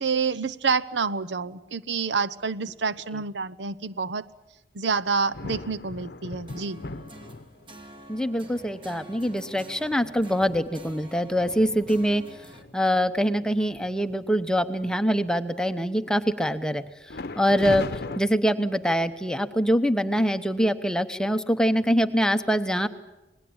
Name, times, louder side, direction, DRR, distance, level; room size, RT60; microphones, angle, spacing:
voice 1, 0.0-4.3 4.7-6.8, right 5 dB, 80° right, 13 dB, 0.8 m, -28 dB
sound 1, 4.9-7.9 8.5-8.7 9.1-12.8 13.3-13.4 13.7-14.1 14.5-15.3 17.1-18.2, left 2 dB, 60° left, 0.8 m, -39 dB
sound 2, 6.5-12.6, right 1 dB, 30° right, 2.1 m, -47 dB
voice 2, 8.1-12.2 12.7-16.8 17.4-17.9 18.2-22.9, equal, 5° left, 10 dB, 0.9 m, -24 dB
27.5 x 20.0 x 8.8 m, 1.0 s
head